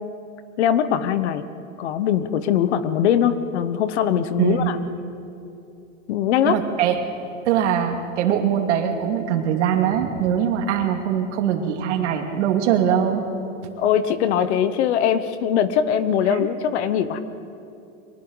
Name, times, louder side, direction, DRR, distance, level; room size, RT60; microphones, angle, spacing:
voice 1, 0.6-1.4 1.8-4.8 6.1-6.6 13.8-17.2, left 9 dB, 55° left, 12 dB, 1.2 m, -21 dB
voice 2, 4.4-4.7 6.4-7.0 7.4-13.2 16.3-16.5, right 9 dB, 60° right, 3 dB, 2.6 m, -22 dB
29.5 x 24.0 x 4.1 m, 2.7 s
supercardioid pair, 175°, 39 cm